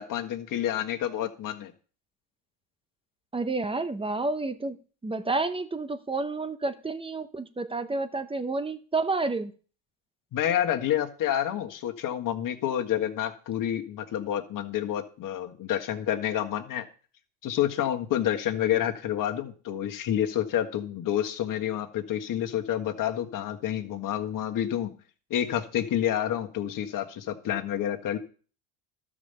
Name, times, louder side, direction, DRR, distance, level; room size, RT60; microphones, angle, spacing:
voice 1, 0.0-1.7 10.3-16.8 17.4-24.9 25.3-28.2, left 11 dB, 45° left, 1.7 m, -29 dB
voice 2, 3.3-4.8 5.0-9.5, right 3 dB, 10° right, 0.8 m, -30 dB
12.5 x 5.2 x 6.9 m
supercardioid pair, 105°, 46 cm